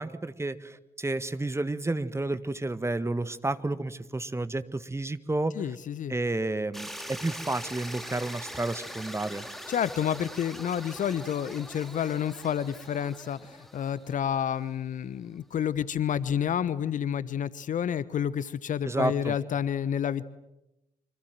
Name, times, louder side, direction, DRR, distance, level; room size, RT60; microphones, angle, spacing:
voice 1, 0.0-5.5 6.1-9.5 18.8-19.4, right 2 dB, 15° right, 13 dB, 1.7 m, -31 dB
voice 2, 5.5-6.1 9.7-20.2, left 9 dB, 45° left, 18 dB, 1.0 m, -29 dB
sound 1, 6.7-14.7, equal, ahead, 3.3 m, -42 dB
27.5 x 25.5 x 7.7 m, 0.93 s
figure-of-eight pair, 45°, 18 cm